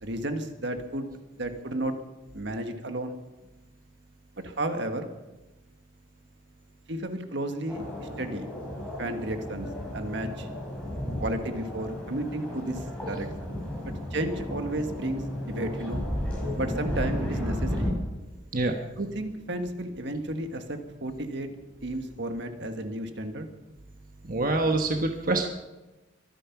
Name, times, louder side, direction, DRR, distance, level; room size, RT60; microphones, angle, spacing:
voice 1, 0.0-1.1 1.4-1.9 2.3-3.2 4.4-5.1 6.9-7.9 8.2-8.5 9.0-9.7 9.9-10.5 11.2-13.3 14.1-16.0 16.6-18.0 19.0-21.5 21.8-23.5, right 1 dB, 65° right, 7 dB, 1.6 m, -32 dB
sound 1, 7.7-17.9, left 1 dB, 5° left, 5.9 m, -33 dB
voice 2, 24.2-25.5, right 2 dB, 50° right, 4 dB, 1.2 m, -25 dB
23.5 x 9.8 x 5.9 m, 1.1 s
head